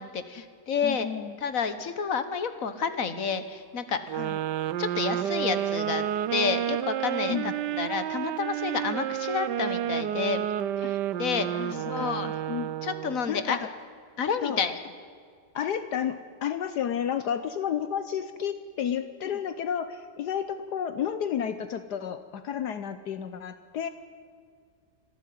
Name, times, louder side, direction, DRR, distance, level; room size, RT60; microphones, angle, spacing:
voice 1, 0.0-1.1 1.4-4.0 4.8-10.4 10.8-12.3 12.8-13.6 14.2-14.8, left 6 dB, 50° left, 11 dB, 1.7 m, -30 dB
voice 2, 0.8-1.4 4.1-4.4 7.3-7.5 10.8-10.9 11.5-12.7 13.3-13.7 14.4-14.6 15.5-23.9, left 8 dB, 70° left, 11 dB, 1.4 m, -32 dB
sound 1, 4.1-13.3, right 11 dB, 75° right, 1.3 m, -30 dB
25.0 x 13.5 x 9.3 m, 2.1 s
omnidirectional pair, 1.9 m